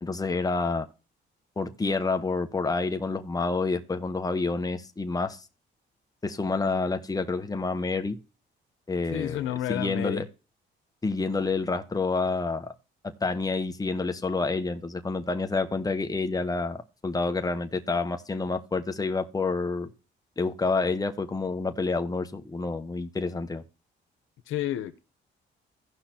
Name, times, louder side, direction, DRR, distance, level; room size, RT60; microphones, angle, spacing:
voice 1, 0.0-0.9 1.6-5.4 6.2-8.2 8.9-10.2 11.0-12.7 13.2-19.9 20.4-23.6, left 3 dB, 20° left, 1.1 m, -28 dB
voice 2, 9.1-10.2 24.5-25.0, left 12 dB, 90° left, 1.0 m, -30 dB
16.5 x 5.8 x 2.9 m
cardioid pair, 90°, 20 cm